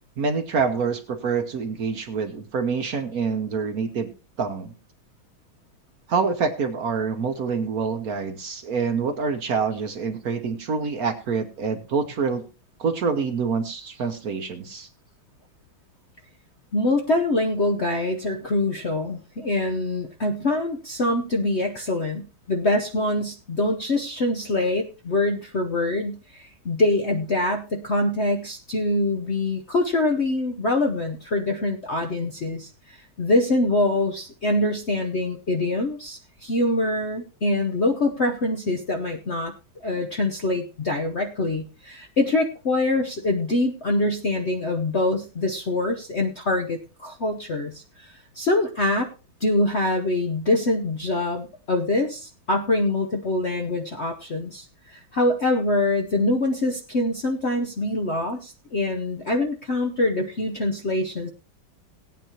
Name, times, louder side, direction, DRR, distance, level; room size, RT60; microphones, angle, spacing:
voice 1, 0.2-4.1 4.4-4.7 6.1-12.4 12.8-14.9, right 5 dB, 55° right, 8 dB, 1.2 m, -26 dB
voice 2, 16.7-39.5 39.8-49.1 49.4-61.3, left 2 dB, 50° left, 3 dB, 0.8 m, -24 dB
18.0 x 9.1 x 2.9 m, 0.30 s
omnidirectional pair, 2.2 m